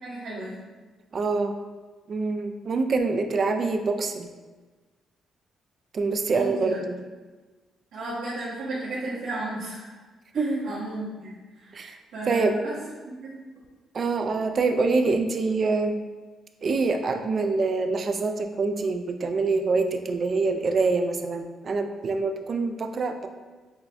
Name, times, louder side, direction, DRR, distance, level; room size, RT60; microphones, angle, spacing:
voice 1, 0.0-0.6 6.3-6.8 7.9-9.9 10.3-11.7 12.1-12.7 13.0-13.4, right 2 dB, 85° right, -11 dB, 1.1 m, -34 dB
voice 2, 1.1-1.6 2.1-4.3 5.9-7.0 10.3-10.7 11.7-12.0 12.3-12.6 13.9-16.0 16.6-23.3, right 3 dB, 45° right, 6 dB, 0.3 m, -25 dB
6.0 x 2.2 x 2.5 m, 1.3 s
cardioid pair, 90°, 0 cm